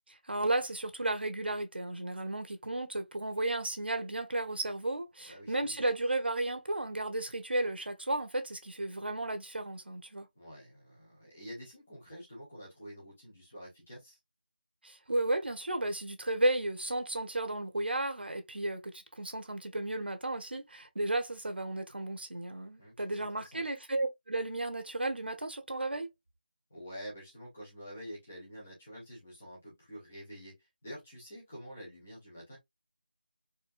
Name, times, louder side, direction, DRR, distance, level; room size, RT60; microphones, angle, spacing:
voice 1, 0.1-10.3 14.8-26.1, right 2 dB, 85° right, 1.1 m, -33 dB
voice 2, 5.2-5.8 10.4-14.2 22.8-23.6 26.7-32.6, equal, 5° left, 0.4 m, -48 dB
4.3 x 2.3 x 2.5 m
figure-of-eight pair, 180°, 5 cm